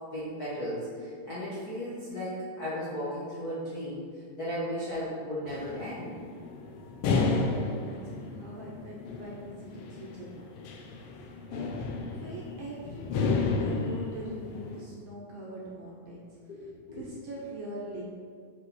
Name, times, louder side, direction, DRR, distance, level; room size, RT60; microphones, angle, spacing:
voice 1, 0.1-4.0 4.4-6.1 16.5-17.0, equal, 60° left, -10 dB, 1.0 m, -35 dB
sound 1, 5.5-14.8, left 4 dB, 80° left, 1.3 m, -32 dB
voice 2, 7.0-10.6 11.5-11.8 12.1-16.3 16.9-18.0, right 1 dB, 75° right, -3 dB, 1.5 m, -43 dB
5.6 x 4.7 x 4.2 m, 2.1 s
omnidirectional pair, 3.4 m